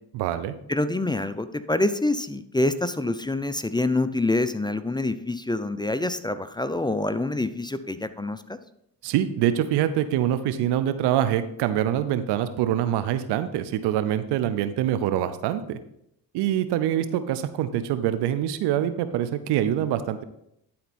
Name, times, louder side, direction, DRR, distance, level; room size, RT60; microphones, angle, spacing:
voice 1, 0.1-0.6 9.0-15.8 16.3-20.2, right 11 dB, 80° right, 12 dB, 0.7 m, -25 dB
voice 2, 0.7-8.6, left 2 dB, 10° left, 12 dB, 0.5 m, -26 dB
11.5 x 4.3 x 4.2 m, 0.77 s
supercardioid pair, 55°, 41 cm